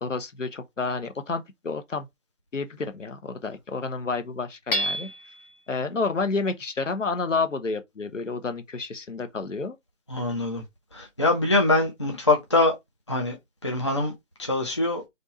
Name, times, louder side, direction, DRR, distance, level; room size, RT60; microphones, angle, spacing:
voice 1, 0.0-2.1 2.5-5.1 5.7-9.8, left 4 dB, 75° left, 1.1 m, -30 dB
Hammer / Chink clink, 4.7-5.5, equal, 45° left, 0.9 m, -28 dB
voice 2, 10.1-10.6 10.9-12.7 13.1-13.4 13.6-14.1 14.4-15.0, left 2 dB, 25° left, 0.5 m, -23 dB
3.4 x 2.6 x 4.1 m
figure-of-eight pair, 150°, 38 cm